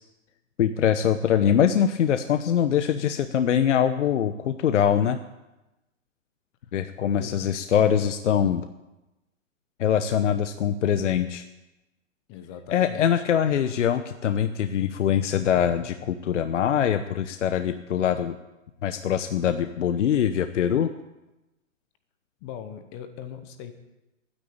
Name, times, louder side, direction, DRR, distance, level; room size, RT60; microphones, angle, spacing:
voice 1, 0.6-5.2 6.7-8.7 9.8-11.4 12.7-18.3 18.8-20.9, left 9 dB, 65° left, 9 dB, 1.0 m, -23 dB
voice 2, 12.3-13.2 22.4-23.7, left 9 dB, 20° left, 9 dB, 1.0 m, -40 dB
12.0 x 9.9 x 8.7 m, 1.0 s
hypercardioid pair, 155°, 39 cm